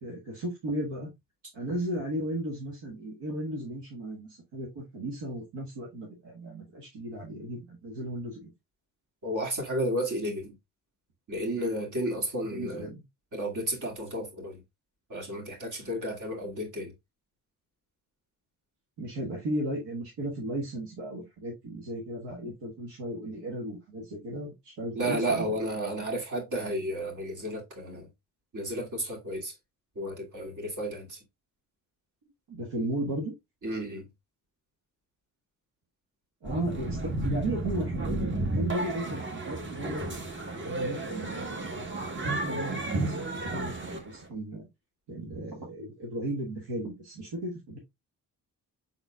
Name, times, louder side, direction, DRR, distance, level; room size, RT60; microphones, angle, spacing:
voice 1, 0.0-1.1 1.5-8.5 12.4-13.0 19.0-25.5 32.5-33.3 36.4-40.1 40.5-41.5 42.2-44.7 45.1-47.8, right 1 dB, 75° right, 1.5 m, -35 dB
voice 2, 9.2-10.5 11.3-12.9 13.3-14.6 15.1-16.9 24.9-28.1 28.5-29.5 30.0-31.2 33.6-34.1, right 1 dB, 45° right, 2.2 m, -32 dB
sound 1, 36.4-44.3, right 2 dB, 30° right, 1.3 m, -32 dB
5.8 x 4.0 x 2.3 m
supercardioid pair, 55°, 41 cm